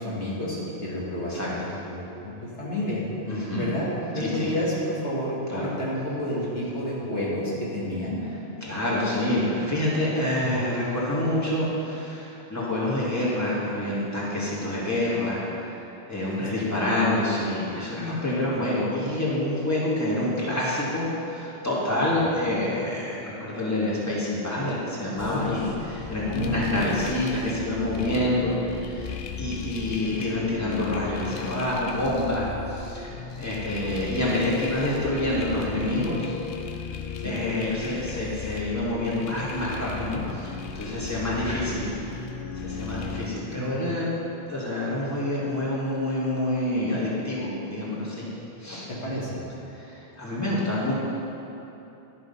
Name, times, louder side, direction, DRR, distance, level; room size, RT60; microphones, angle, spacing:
voice 1, 0.0-3.0 3.5-8.2 16.4-16.8 22.1-22.2 26.3-26.6 30.0-30.1 37.2-37.4 43.6-43.9 48.9-49.4, left 1 dB, 85° left, -6 dB, 2.2 m, -30 dB
voice 2, 3.3-3.7 4.2-4.5 5.5-5.7 8.6-15.8 16.1-36.3 37.2-41.9 42.5-44.1 44.5-48.2 48.6-48.8 49.7-50.9, left 1 dB, 15° left, -7 dB, 1.9 m, -27 dB
sound 1, 25.2-43.3, left 6 dB, 60° left, 0.6 m, -36 dB
11.5 x 6.0 x 5.6 m, 2.9 s
omnidirectional pair, 1.1 m